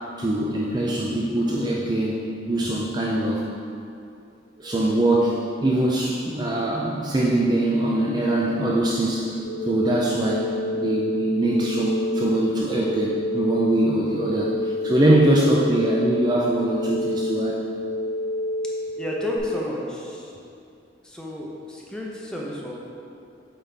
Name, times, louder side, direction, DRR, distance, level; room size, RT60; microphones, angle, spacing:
voice 1, 0.2-3.4 4.6-9.3 9.6-17.6, right 1 dB, 25° right, -4 dB, 0.4 m, -22 dB
sound 1, 9.4-19.4, left 1 dB, 45° left, 1.2 m, -29 dB
voice 2, 18.9-20.3 21.0-22.7, left 1 dB, 5° left, -3 dB, 0.7 m, -32 dB
8.0 x 4.0 x 3.4 m, 2.5 s
head